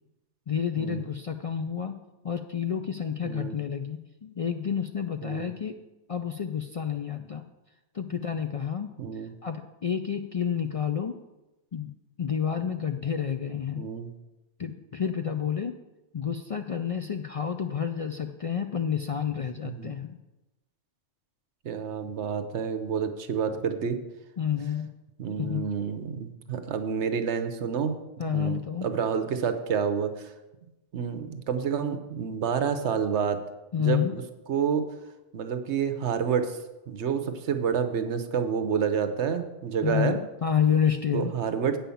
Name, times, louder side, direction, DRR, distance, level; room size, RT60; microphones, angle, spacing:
voice 1, 0.5-1.9 2.2-5.8 6.1-7.5 7.9-8.9 9.4-11.2 11.7-11.9 12.2-13.8 14.6-15.7 16.1-20.2 24.4-24.9 25.4-25.6 28.2-28.9 33.7-34.1 39.8-41.3, left 8 dB, 70° left, 7 dB, 0.3 m, -29 dB
voice 2, 3.2-3.6 5.2-5.5 9.0-9.3 13.8-14.1 19.6-19.9 21.6-24.0 25.2-30.3 30.9-33.4 33.8-34.2 34.5-34.9 35.3-36.6 36.9-40.2 41.1-41.8, right 7 dB, 70° right, 9 dB, 1.1 m, -29 dB
8.7 x 5.7 x 7.0 m, 1.0 s
omnidirectional pair, 1.2 m